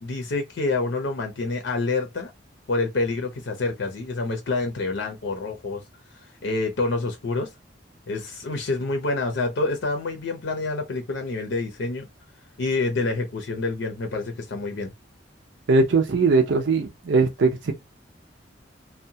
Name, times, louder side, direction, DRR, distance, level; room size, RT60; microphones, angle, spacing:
voice 1, 0.0-2.3 2.7-5.8 6.4-7.5 8.1-12.1 12.6-14.9, left 3 dB, 70° left, 0.6 m, -27 dB
voice 2, 15.7-17.7, right 4 dB, 75° right, 0.5 m, -20 dB
2.6 x 2.2 x 2.7 m
head